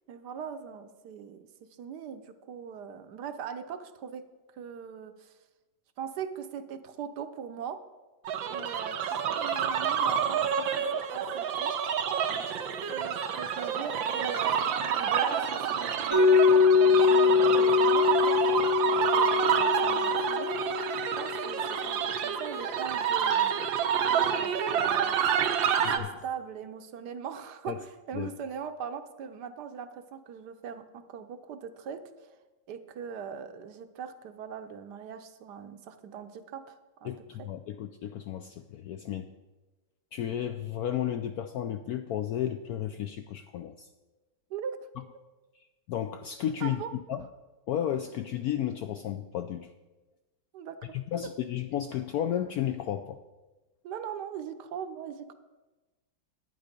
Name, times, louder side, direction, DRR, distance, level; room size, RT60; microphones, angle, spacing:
voice 1, 0.1-1.5 1.8-4.2 4.5-5.3 6.0-7.8 8.5-10.7 10.9-11.7 12.3-12.6 12.9-20.8 21.1-23.7 24.1-25.4 25.7-32.3 32.7-37.5 44.5-44.8 46.6-46.9 50.5-50.9 53.8-55.3, right 7 dB, 70° right, 9 dB, 1.2 m, -41 dB
sound 1, 8.2-26.0, right 8 dB, 90° right, 1.6 m, -28 dB
Mallet percussion, 16.1-21.9, left 5 dB, 20° right, 0.8 m, -23 dB
voice 2, 37.0-39.3 40.1-43.9 45.9-46.8 47.1-47.2 47.7-49.7 50.9-53.2, left 10 dB, 75° left, 8 dB, 0.8 m, -33 dB
11.0 x 9.4 x 5.1 m, 1.2 s
omnidirectional pair, 2.0 m